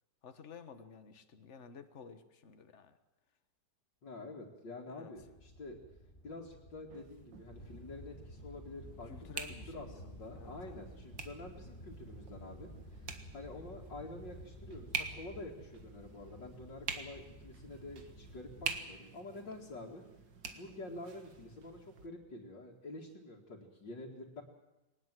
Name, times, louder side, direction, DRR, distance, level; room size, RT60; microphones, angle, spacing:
voice 1, 0.2-3.0 4.9-5.1 9.0-10.1 10.3-10.9, left 5 dB, 45° left, 9 dB, 1.6 m, -52 dB
voice 2, 4.0-5.8 6.2-9.3 9.7-20.0 20.5-24.4, left 2 dB, 80° left, -3 dB, 3.0 m, -48 dB
sound 1, 5.2-18.8, equal, 25° left, 2.7 m, -53 dB
sound 2, 6.9-22.1, right 6 dB, 85° right, 2.3 m, -47 dB
21.5 x 19.5 x 7.7 m, 0.99 s
omnidirectional pair, 1.9 m